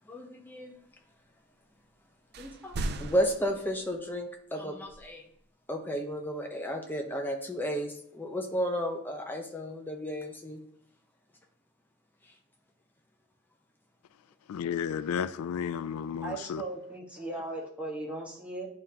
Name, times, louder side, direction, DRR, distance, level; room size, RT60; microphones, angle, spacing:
voice 1, 0.1-0.8 2.4-5.2 5.7-10.6, equal, 10° left, 0.7 m, -33 dB
sound 1, 2.3-4.0 4.9-5.0, right 2 dB, 50° right, 0.4 m, -37 dB
voice 2, 14.5-16.6, left 7 dB, 90° left, 0.3 m, -32 dB
voice 3, 16.2-18.7, right 2 dB, 5° right, 1.3 m, -38 dB
10.5 x 3.6 x 2.8 m
head